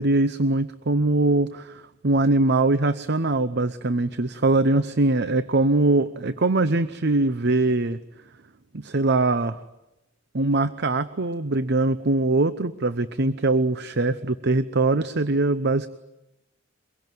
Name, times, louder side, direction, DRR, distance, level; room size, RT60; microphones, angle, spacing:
voice 1, 0.0-8.0 8.7-9.6 10.3-15.9, right 2 dB, 55° right, 13 dB, 0.8 m, -22 dB
24.0 x 22.5 x 9.3 m, 0.95 s
head